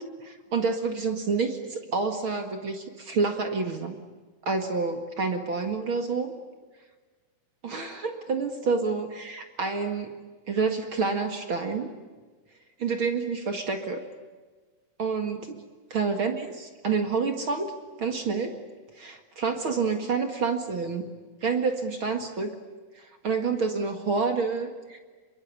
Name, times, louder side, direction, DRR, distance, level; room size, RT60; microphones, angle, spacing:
voice 1, 0.0-3.9 4.4-6.3 7.6-10.1 10.5-11.9 12.8-14.0 15.0-15.6 15.9-17.7 18.0-18.5 18.9-21.1 21.4-22.5 22.9-25.0, right 4 dB, 45° right, 6 dB, 1.8 m, -28 dB
26.0 x 23.0 x 9.8 m, 1.4 s
omnidirectional pair, 4.7 m